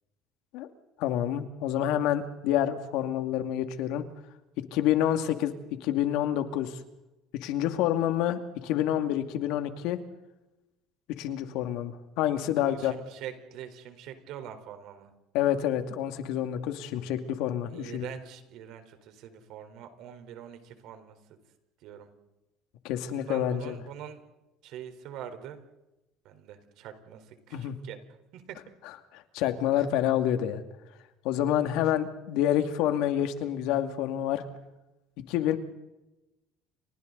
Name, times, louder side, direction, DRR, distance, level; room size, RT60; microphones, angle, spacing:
voice 1, 1.0-4.1 4.7-5.5 5.8-6.8 7.4-10.0 11.2-12.9 15.3-18.0 22.8-23.7 27.5-27.8 29.1-30.6 31.2-34.4 35.3-35.6, left 11 dB, 75° left, 7 dB, 2.3 m, -28 dB
voice 2, 12.6-15.1 17.6-21.2 21.8-22.1 23.1-24.2 24.6-25.6 26.2-28.0 28.3-28.6 29.7-29.8 31.7-31.8 35.3-35.6, right 9 dB, 70° right, 7 dB, 4.2 m, -44 dB
29.5 x 26.5 x 4.1 m, 0.98 s
supercardioid pair, 105°, 0 cm